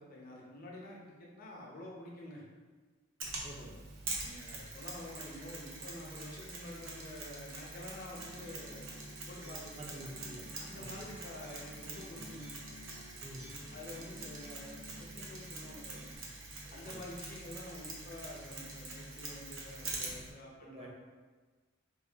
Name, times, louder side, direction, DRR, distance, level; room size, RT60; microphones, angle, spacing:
voice 1, 0.0-2.4 4.2-8.9 9.3-10.1 10.6-12.4 13.7-16.2 16.7-20.9, left 1 dB, 40° left, -4 dB, 0.7 m, -48 dB
Mechanisms, 3.2-20.3, right 3 dB, 65° right, 0.7 m, -45 dB
voice 2, 3.4-3.7 9.8-10.4 10.7-11.1 13.2-13.5 16.7-17.0 20.7-20.9, right 1 dB, 25° right, -1 dB, 0.5 m, -48 dB
Acoustic guitar, 8.2-16.2, left 1 dB, 90° right, 1.2 m, -54 dB
3.6 x 2.3 x 3.4 m, 1.4 s
head